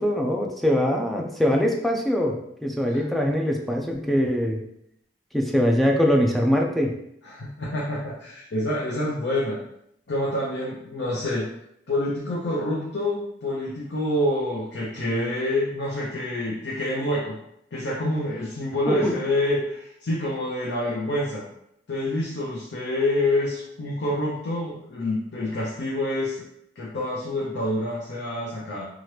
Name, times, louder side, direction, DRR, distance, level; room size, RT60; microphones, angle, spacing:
voice 1, 0.0-4.6 5.3-6.9 18.9-19.1, equal, ahead, 0 dB, 0.3 m, -22 dB
voice 2, 7.2-9.6 10.1-11.5 11.9-17.4 17.7-21.4 21.9-26.4 26.8-28.9, left 1 dB, 80° left, -4 dB, 0.6 m, -27 dB
2.8 x 2.4 x 3.1 m, 0.75 s
head